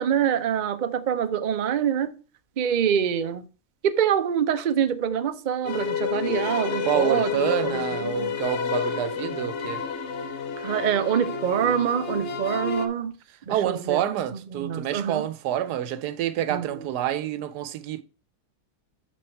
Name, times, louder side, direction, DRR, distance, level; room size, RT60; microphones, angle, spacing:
voice 1, 0.0-2.1 2.6-3.4 3.8-8.4 10.6-13.1 13.5-15.2 16.5-16.6, right 8 dB, 70° right, 0.4 m, -25 dB
sound 1, 5.6-12.9, left 6 dB, 55° left, 0.9 m, -30 dB
voice 2, 6.9-9.8 13.5-18.0, right 11 dB, 85° right, 1.2 m, -27 dB
6.4 x 6.2 x 4.5 m
omnidirectional pair, 1.7 m